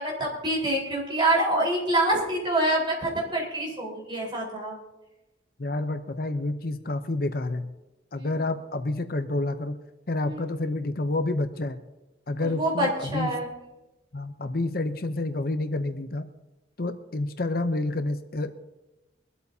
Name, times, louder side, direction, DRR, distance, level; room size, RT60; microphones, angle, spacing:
voice 1, 0.0-4.8 8.2-8.3 10.2-10.5 12.4-13.5, right 1 dB, 25° right, -3 dB, 4.3 m, -26 dB
voice 2, 5.6-7.7 8.1-9.8 10.1-11.8 12.3-13.3 14.1-16.2 16.8-18.5, left 2 dB, 50° left, 9 dB, 0.7 m, -29 dB
23.0 x 12.5 x 2.8 m, 1.0 s
head